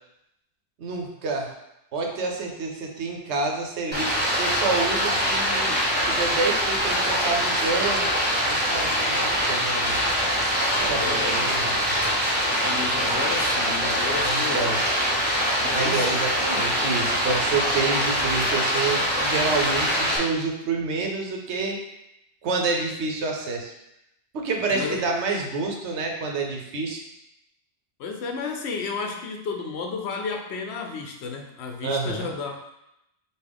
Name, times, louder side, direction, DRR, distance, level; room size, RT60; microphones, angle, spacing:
voice 1, 0.8-1.5 1.9-8.1 8.5-10.0 10.4-10.5 10.8-11.7 14.2-14.8 15.7-21.8 22.4-23.7 24.3-27.0 31.8-32.3, right 4 dB, 90° right, 1 dB, 1.1 m, -28 dB
Stream, 3.9-20.2, equal, 10° right, 1.0 m, -24 dB
voice 2, 10.8-11.4 12.5-14.8 15.6-16.2 24.7-25.0 28.0-32.7, left 4 dB, 75° left, 3 dB, 0.9 m, -32 dB
5.4 x 2.5 x 3.4 m, 0.85 s
omnidirectional pair, 1.1 m